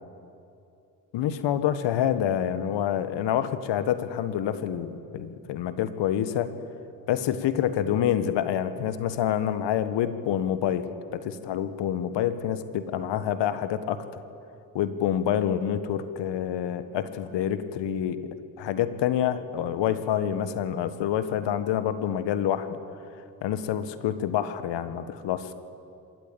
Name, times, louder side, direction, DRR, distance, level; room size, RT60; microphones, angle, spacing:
voice 1, 1.1-6.5 7.1-10.9 11.1-14.2 14.7-18.2 18.6-22.8 23.4-25.5, left 10 dB, 65° left, 12 dB, 1.5 m, -27 dB
26.0 x 13.5 x 8.5 m, 2.6 s
hypercardioid pair, 50°, 46 cm